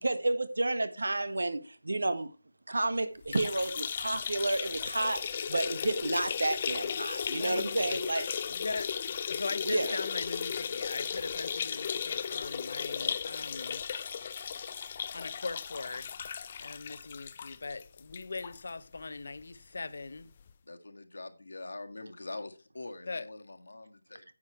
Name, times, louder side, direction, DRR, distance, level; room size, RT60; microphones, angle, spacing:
voice 1, 0.0-2.3 2.7-8.3 9.6-10.0, right 2 dB, 85° right, 1.5 m, -31 dB
sound 1, 3.2-18.6 19.0-19.1 19.4-19.5 20.5-20.6, left 7 dB, 20° left, 0.4 m, -36 dB
voice 2, 7.3-7.9 8.5-8.9 9.3-13.8 15.1-16.1 16.6-20.3 23.1-23.3, left 3 dB, 40° left, 0.8 m, -40 dB
voice 3, 20.7-24.2, left 2 dB, 75° left, 1.8 m, -44 dB
9.7 x 7.5 x 4.5 m
figure-of-eight pair, 180°, 0 cm